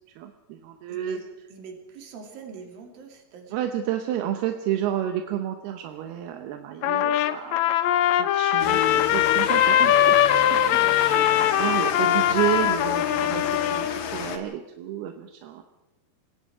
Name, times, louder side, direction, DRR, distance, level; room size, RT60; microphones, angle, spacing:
voice 1, 0.2-1.2 3.5-10.2 10.5-15.6, right 11 dB, 85° right, 6 dB, 3.0 m, -31 dB
voice 2, 0.9-3.6 10.8-11.5, right 5 dB, 65° right, 3 dB, 4.1 m, -43 dB
Trumpet, 6.8-13.9, left 11 dB, 90° left, 1.6 m, -21 dB
sound 1, 8.6-14.4, left 8 dB, 65° left, 2.8 m, -32 dB
29.0 x 18.5 x 4.9 m, 0.97 s
omnidirectional pair, 4.5 m